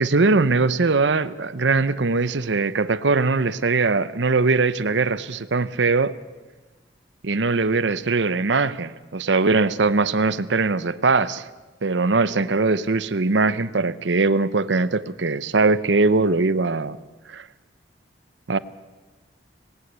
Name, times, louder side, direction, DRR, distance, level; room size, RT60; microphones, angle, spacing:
voice 1, 0.0-6.1 7.2-11.5 11.8-17.0 17.3-17.5 18.5-18.6, right 3 dB, 85° right, 16 dB, 0.8 m, -21 dB
18.5 x 17.5 x 8.2 m, 1.2 s
head